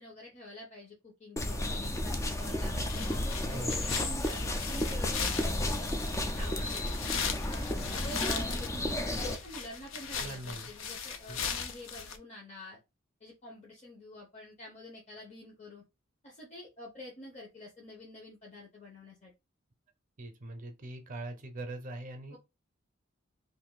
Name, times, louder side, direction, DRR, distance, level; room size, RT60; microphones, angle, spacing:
voice 1, 0.0-3.0 3.5-7.3 7.9-12.8 13.2-15.8 16.2-19.3 22.3-22.4, left 1 dB, 35° left, 0.8 m, -47 dB
sound 1, 1.4-9.4, left 1 dB, 15° left, 0.3 m, -32 dB
sound 2, 2.8-12.2, left 6 dB, 70° left, 0.5 m, -39 dB
voice 2, 3.5-3.9 10.1-10.7 11.3-11.5 20.2-22.4, right 2 dB, 40° right, 0.6 m, -42 dB
2.6 x 2.5 x 3.9 m
head